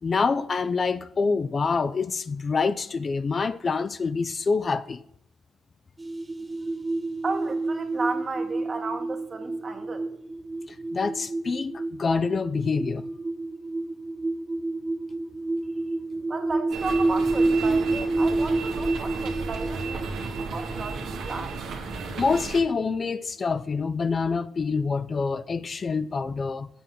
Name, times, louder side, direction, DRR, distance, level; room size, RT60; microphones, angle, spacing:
voice 1, 0.0-5.0 10.7-13.0 22.2-26.7, left 4 dB, 40° left, 0.4 m, -26 dB
sound 1, 6.0-22.3, right 2 dB, 20° right, 0.7 m, -29 dB
voice 2, 7.2-10.1 16.3-21.6, right 3 dB, 35° right, 1.4 m, -34 dB
sound 2, 16.7-22.6, right 4 dB, 75° right, 1.5 m, -34 dB
7.5 x 6.8 x 5.7 m
cardioid pair, 90°, 0 cm